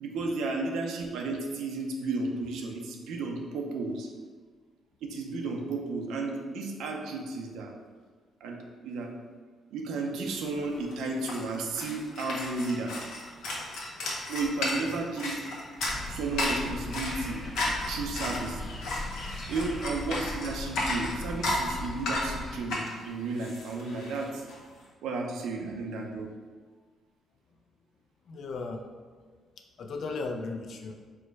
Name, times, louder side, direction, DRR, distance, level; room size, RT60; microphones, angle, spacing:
voice 1, 0.0-4.1 5.0-7.7 8.4-9.1 9.7-13.0 14.3-15.4 16.1-17.4 17.9-18.6 19.5-24.5 25.0-26.3, right 3 dB, 85° right, 2 dB, 0.6 m, -33 dB
sound 1, 10.4-10.5 10.7-24.6, left 2 dB, 80° left, 1.0 m, -34 dB
sound 2, 15.8-22.6, left 2 dB, 5° left, 1.0 m, -39 dB
voice 2, 28.3-28.9 29.2-29.3 29.8-31.0, left 3 dB, 60° left, 4 dB, 0.5 m, -36 dB
4.5 x 2.2 x 4.5 m, 1.5 s
cardioid pair, 90°, 0 cm